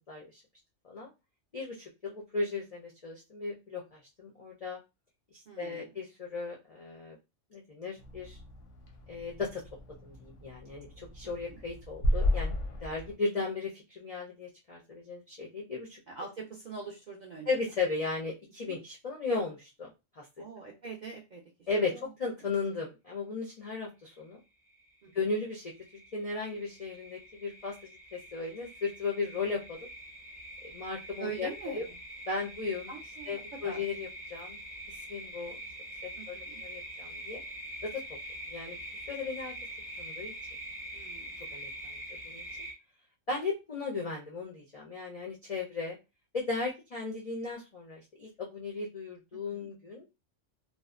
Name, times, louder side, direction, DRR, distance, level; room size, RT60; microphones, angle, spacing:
voice 1, 0.1-0.4 0.8-1.1 1.5-4.8 5.6-7.2 7.5-8.4 9.1-9.6 10.0-12.5 12.8-16.0 17.5-19.9 20.2-20.3 21.7-21.9 22.2-24.4 25.1-25.7 26.1-27.7 28.1-29.8 30.6-31.8 32.3-32.9 33.3-34.6 34.9-35.6 36.3-37.4 37.8-38.0 38.5-38.8 39.1-39.5 40.0-40.3 41.5-42.0 42.2-42.4 43.3-46.0 46.3-50.0, left 4 dB, 60° left, -2 dB, 0.3 m, -36 dB
voice 2, 5.5-5.9 11.2-11.6 16.1-17.5 18.6-18.8 20.4-22.1 25.0-25.3 31.2-31.8 32.9-33.9 36.1-36.6 40.9-41.4 49.3-49.7, right 5 dB, 60° right, -1 dB, 0.4 m, -44 dB
sound 1, 8.0-13.1, left 1 dB, 85° left, 1.0 m, -34 dB
sound 2, 24.7-24.9 25.3-42.7, right 1 dB, 5° right, 0.5 m, -44 dB
2.5 x 2.1 x 2.4 m, 0.26 s
omnidirectional pair, 1.3 m